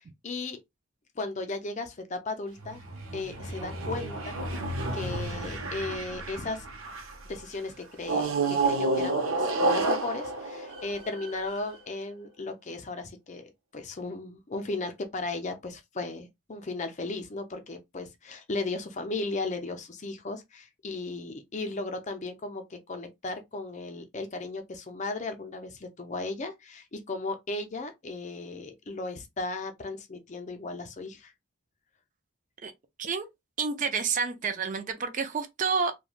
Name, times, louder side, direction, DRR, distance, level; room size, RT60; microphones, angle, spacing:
voice 1, 0.2-0.6 1.2-2.8 3.1-4.4 4.9-6.7 7.2-31.3, left 3 dB, 35° left, 0.5 m, -36 dB
sound 1, 2.6-7.2 8.0-11.6, right 2 dB, 75° right, 0.8 m, -30 dB
voice 2, 33.6-35.9, right 5 dB, 40° right, 0.4 m, -29 dB
3.1 x 2.2 x 2.4 m
head